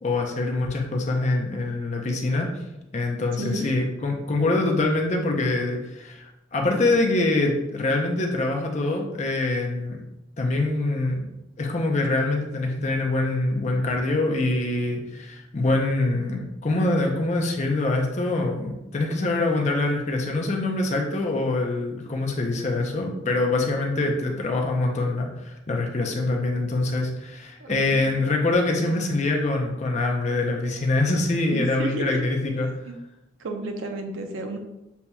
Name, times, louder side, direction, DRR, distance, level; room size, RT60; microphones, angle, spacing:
voice 1, 0.0-2.5 2.9-10.0 10.4-11.3 11.6-32.7, left 2 dB, 35° left, 1 dB, 0.5 m, -24 dB
voice 2, 27.6-28.1 31.5-32.2 32.8-33.0 33.4-34.6, right 2 dB, 80° right, 4 dB, 0.7 m, -32 dB
6.9 x 2.8 x 2.3 m, 0.94 s
head